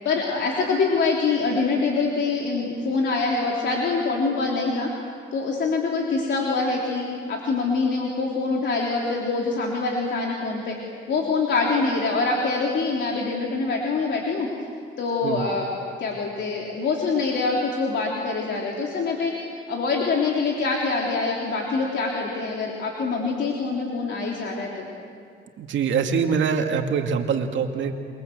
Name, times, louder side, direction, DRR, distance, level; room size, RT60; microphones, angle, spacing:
voice 1, 0.0-4.9 5.3-10.7 11.1-14.5 15.0-15.7 16.0-19.3 19.7-24.9, left 4 dB, 65° left, -2 dB, 3.4 m, -25 dB
voice 2, 25.6-27.9, right 6 dB, 75° right, 4 dB, 2.3 m, -24 dB
29.0 x 22.5 x 8.0 m, 2.2 s
cardioid pair, 90°, 20 cm